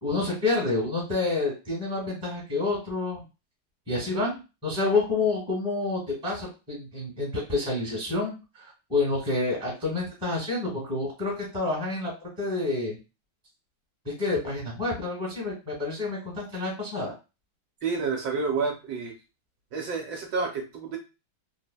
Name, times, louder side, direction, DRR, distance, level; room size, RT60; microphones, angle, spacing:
voice 1, 0.0-3.2 3.9-13.0 14.2-17.1, left 3 dB, 5° right, -4 dB, 0.9 m, -28 dB
voice 2, 17.8-19.1 19.7-21.0, right 4 dB, 75° right, 1 dB, 1.1 m, -29 dB
3.3 x 2.1 x 2.2 m, 0.29 s
omnidirectional pair, 2.1 m